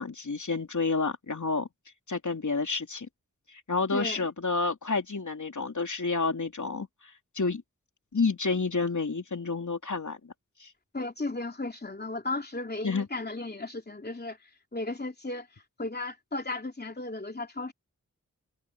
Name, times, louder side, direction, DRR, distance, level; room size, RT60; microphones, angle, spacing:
voice 1, 0.0-1.7 2.1-3.1 3.5-7.6 8.1-10.3 10.6-10.7 12.8-13.1, left 4 dB, 60° left, 3.4 m, -30 dB
voice 2, 3.9-4.3 10.9-15.5 15.8-17.7, left 2 dB, 30° left, 3.0 m, -35 dB
cardioid pair, 40°, 33 cm